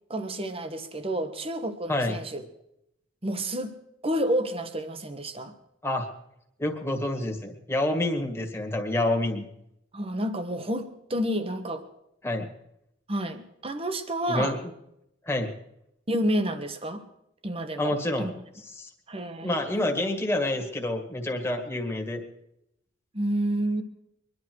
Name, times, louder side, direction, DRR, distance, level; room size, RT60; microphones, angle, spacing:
voice 1, 0.1-2.4 3.2-3.8 4.0-5.5 9.9-11.9 13.1-14.6 16.1-17.1 17.4-18.3 19.1-20.0 23.1-23.8, right 1 dB, 30° right, 9 dB, 1.3 m, -30 dB
voice 2, 6.6-9.5 12.2-12.5 14.3-14.6 15.3-15.5 17.8-18.3 18.8-18.9 19.4-22.2, left 1 dB, 15° left, 3 dB, 2.0 m, -28 dB
23.5 x 11.0 x 4.7 m, 0.80 s
head